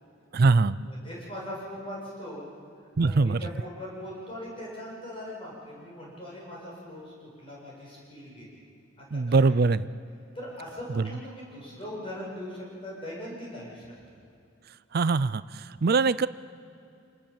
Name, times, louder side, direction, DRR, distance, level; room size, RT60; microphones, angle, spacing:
voice 1, 0.3-0.8 3.0-3.5 9.1-9.9 11.0-11.1 14.9-16.3, right 4 dB, 50° right, 17 dB, 0.5 m, -23 dB
voice 2, 0.8-2.4 3.0-8.6 9.1-9.4 10.3-13.9, equal, 25° left, -4 dB, 7.8 m, -40 dB
27.0 x 20.0 x 7.5 m, 2.5 s
head